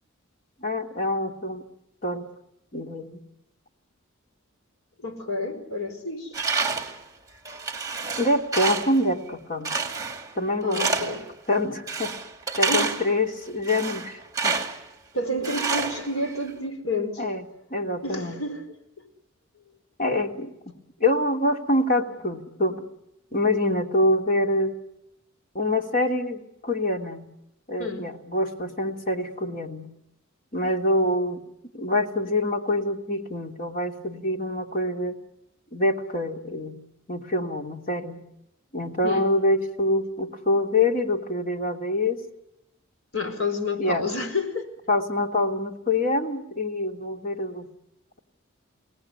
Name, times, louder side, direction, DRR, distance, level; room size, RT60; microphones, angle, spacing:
voice 1, 0.6-1.7 2.0-2.3 2.7-3.2 8.2-9.7 10.3-10.8 11.5-12.1 12.6-14.5 17.2-17.4 17.7-18.4 20.0-20.5 21.0-22.8 23.3-24.7 25.5-27.3 27.7-29.9 30.5-31.5 31.7-35.2 35.7-36.8 37.1-38.2 38.7-42.2 43.8-44.3 44.9-47.7, left 1 dB, 40° left, 2 dB, 3.1 m, -25 dB
voice 2, 5.0-6.3 10.6-11.3 12.7-13.0 15.1-17.2 18.0-18.6 27.8-28.1 39.0-39.3 43.1-44.7, left 2 dB, 85° left, 7 dB, 4.6 m, -29 dB
Tools, 6.3-7.0 7.4-9.0 9.6-10.3 10.7-11.3 11.9-13.1 13.6-14.8 15.4-16.5, right 4 dB, 15° right, 2.3 m, -28 dB
29.5 x 19.0 x 9.8 m, 0.89 s
head